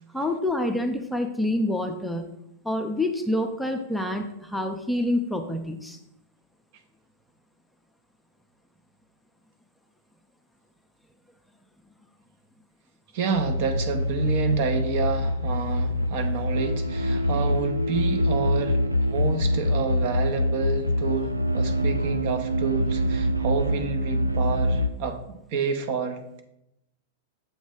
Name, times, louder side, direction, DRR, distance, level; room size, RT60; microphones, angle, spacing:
voice 1, 0.1-2.3 2.6-6.0, left 1 dB, ahead, 3 dB, 0.6 m, -27 dB
voice 2, 13.1-26.4, right 4 dB, 50° right, 6 dB, 0.8 m, -29 dB
sound 1, 13.3-24.9, equal, 90° right, 0.3 m, -25 dB
7.3 x 3.1 x 5.3 m, 0.83 s
figure-of-eight pair, 95°, 0 cm